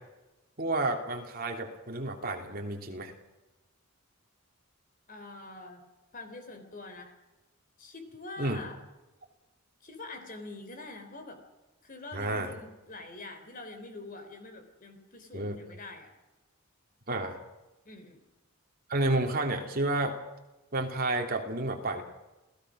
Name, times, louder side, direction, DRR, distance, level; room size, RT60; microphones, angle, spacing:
voice 1, 0.6-3.1 8.4-8.6 12.1-12.5 15.3-15.6 17.1-17.4 18.9-20.2 20.7-22.0, right 2 dB, 45° right, 3 dB, 3.1 m, -30 dB
voice 2, 5.1-5.9 6.1-7.1 7.8-8.8 9.8-11.4 11.8-16.1 17.9-18.2, left 2 dB, 40° left, 7 dB, 3.6 m, -45 dB
28.5 x 17.0 x 6.3 m, 1.1 s
head